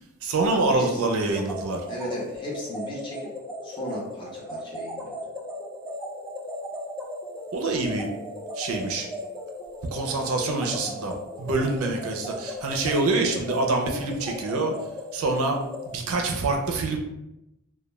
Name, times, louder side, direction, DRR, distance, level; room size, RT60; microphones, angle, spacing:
voice 1, 0.2-1.8 7.5-8.1 8.6-9.1 9.9-14.7 15.1-15.6 15.9-17.0, right 3 dB, 70° right, 2 dB, 0.4 m, -26 dB
voice 2, 0.7-1.1 1.9-3.3 3.6-5.1, equal, 20° left, -5 dB, 0.7 m, -35 dB
sound 1, 1.3-15.9, left 1 dB, ahead, 0.3 m, -37 dB
2.2 x 2.2 x 3.0 m, 0.87 s
head